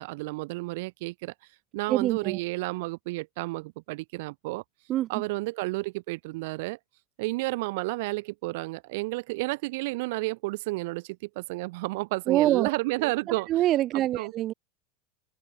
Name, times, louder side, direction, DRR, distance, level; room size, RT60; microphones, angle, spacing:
voice 1, 0.0-1.3 1.7-4.6 5.1-6.8 7.2-13.5 14.1-14.3, right 23 dB, 70° right, 1.4 m, -31 dB
voice 2, 1.9-2.4 4.9-5.1 12.3-12.7 13.0-13.1 13.5-14.5, right 14 dB, 45° right, 0.4 m, -25 dB
open air
hypercardioid pair, 105°, 0 cm